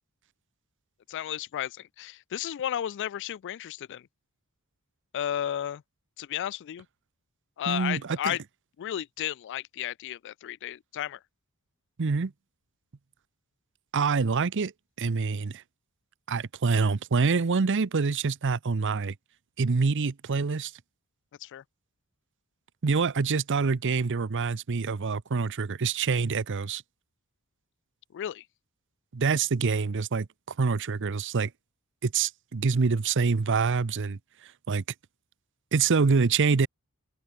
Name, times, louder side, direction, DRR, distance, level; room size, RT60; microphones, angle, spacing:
voice 1, 1.1-4.1 5.1-5.8 6.2-6.9 7.6-8.4 8.8-11.2 21.4-21.6 28.1-28.4, left 11 dB, 55° left, 0.3 m, -33 dB
voice 2, 7.7-8.4 12.0-12.3 13.9-14.7 15.0-15.6 16.3-19.1 19.6-20.7 22.8-26.8 29.1-30.3 30.6-31.5 32.0-34.2 34.7-34.8 35.7-36.7, right 4 dB, 55° right, 0.6 m, -26 dB
open air
head